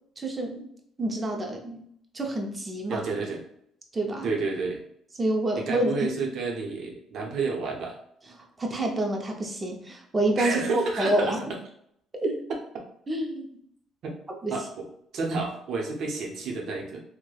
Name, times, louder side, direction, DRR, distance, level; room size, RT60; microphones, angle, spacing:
voice 1, 0.2-0.7 1.0-1.8 2.1-3.1 3.9-4.3 5.2-6.1 8.6-11.4 12.1-12.3 13.1-13.5 14.4-14.6, right 1 dB, 25° right, 2 dB, 0.5 m, -27 dB
voice 2, 2.9-3.4 4.2-4.8 5.5-8.0 10.4-11.3 14.0-14.1 14.5-14.8 15.1-17.0, right 4 dB, 60° right, 0 dB, 0.7 m, -30 dB
3.1 x 2.1 x 2.3 m, 0.70 s
cardioid pair, 115°, 0 cm